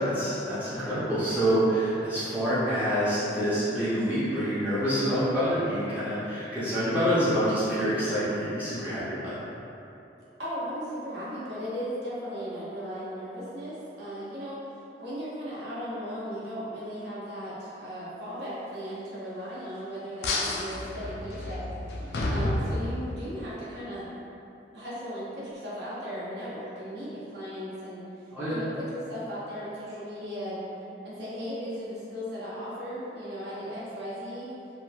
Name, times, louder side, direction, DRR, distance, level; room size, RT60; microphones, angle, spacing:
voice 1, 0.0-9.3 28.3-28.6, equal, 10° right, -13 dB, 0.5 m, -27 dB
voice 2, 10.4-14.6 15.0-24.1 24.7-30.8 31.0-34.5, equal, 65° right, -10 dB, 0.8 m, -37 dB
sound 1, 20.2-23.4, left 2 dB, 65° left, 0.3 m, -30 dB
2.9 x 2.5 x 2.3 m, 2.9 s
head